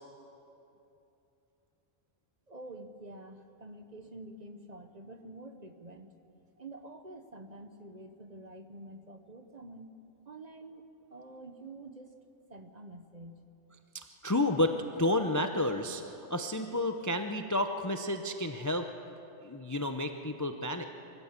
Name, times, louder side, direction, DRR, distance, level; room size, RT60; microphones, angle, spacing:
voice 1, 2.5-6.1 6.6-9.9 10.3-12.1 12.5-13.4, right 2 dB, 35° right, 7 dB, 0.9 m, -48 dB
voice 2, 13.9-18.9 19.4-20.9, left 1 dB, 20° left, 6 dB, 0.5 m, -31 dB
23.5 x 15.5 x 7.3 m, 2.9 s
omnidirectional pair, 1.3 m